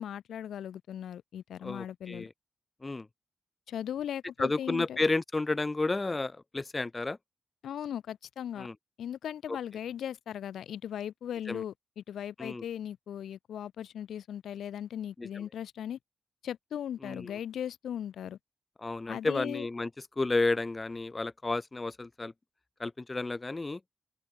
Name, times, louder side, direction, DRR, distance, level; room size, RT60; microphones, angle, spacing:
voice 1, 0.0-2.3 3.7-5.0 7.6-8.7 9.0-16.0 16.4-18.4 19.1-19.7, left 10 dB, 85° left, 6.2 m, -38 dB
voice 2, 1.6-2.3 2.8-3.1 4.4-7.2 8.6-8.7 9.5-9.6 11.5-11.6 12.4-12.6 15.2-15.4 17.0-17.4 18.8-19.9 20.2-22.3 22.8-23.8, left 3 dB, 30° left, 3.5 m, -31 dB
cardioid pair, 65°, 0 cm